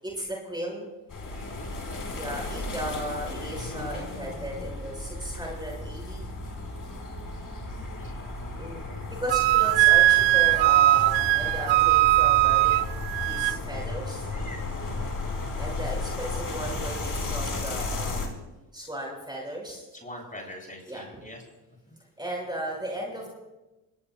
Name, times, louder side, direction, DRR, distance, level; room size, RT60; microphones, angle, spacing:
voice 1, 0.0-0.9 2.1-7.3 8.6-8.8 9.2-12.7 13.2-14.3 15.5-18.3 18.7-19.8 20.9-21.1 22.2-23.3, equal, 10° right, -2 dB, 6.0 m, -36 dB
sound 1, 1.1-18.3, left 2 dB, 40° left, 4.7 m, -34 dB
voice 2, 1.3-1.7 7.9-8.1 14.3-15.2 19.9-21.4 21.9-22.0, left 1 dB, 15° left, -1 dB, 7.6 m, -44 dB
Wind instrument woodwind instrument, 9.3-13.6, right 17 dB, 80° right, 0.6 m, -20 dB
26.0 x 19.5 x 2.3 m, 1.1 s
supercardioid pair, 60°, 47 cm